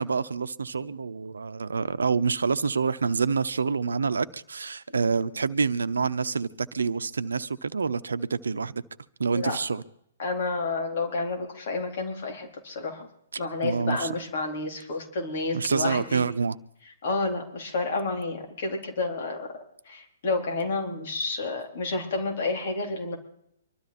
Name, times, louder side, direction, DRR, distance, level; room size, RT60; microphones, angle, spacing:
voice 1, 0.0-8.8 9.2-9.8 13.6-14.1 15.5-16.6, right 5 dB, 75° right, 14 dB, 0.8 m, -27 dB
voice 2, 10.2-13.1 13.4-16.2 17.0-23.2, left 3 dB, 55° left, 3 dB, 4.1 m, -30 dB
24.5 x 13.0 x 4.4 m, 0.71 s
figure-of-eight pair, 125°, 0 cm